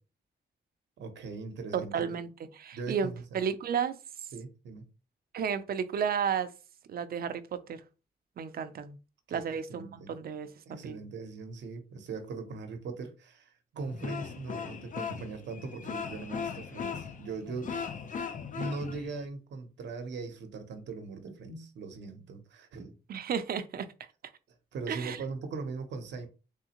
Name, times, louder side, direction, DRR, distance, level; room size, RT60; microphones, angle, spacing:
voice 1, 1.0-2.2 2.7-3.4 4.3-4.9 9.3-10.1 10.6-17.8 18.5-22.9 24.7-26.3, right 4 dB, 90° right, 0.8 m, -40 dB
voice 2, 1.7-2.3 2.6-4.0 5.3-6.5 6.9-7.8 8.4-9.0 9.3-11.0 23.1-23.9 24.9-25.2, right 7 dB, 55° right, 0.5 m, -32 dB
sound 1, 13.8-19.2, left 6 dB, 45° left, 0.5 m, -38 dB
3.6 x 3.2 x 2.9 m
cardioid pair, 110°, 18 cm